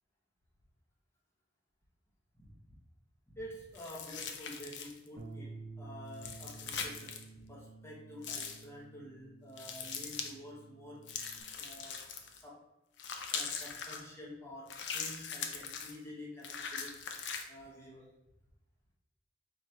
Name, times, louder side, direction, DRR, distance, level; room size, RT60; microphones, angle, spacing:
voice 1, 2.4-2.8 3.3-11.1 11.5-12.7 13.3-17.0 17.5-18.1, left 1 dB, 15° left, -5 dB, 1.1 m, -49 dB
sound 1, 3.7-5.1 6.1-7.2 8.2-8.6 9.6-10.3 11.1-12.4 13.0-14.0 14.7-16.0 16.4-17.4, left 6 dB, 90° left, 0.5 m, -41 dB
Bass guitar, 5.2-11.4, right 3 dB, 65° right, 0.5 m, -51 dB
4.0 x 3.0 x 4.4 m, 0.95 s
head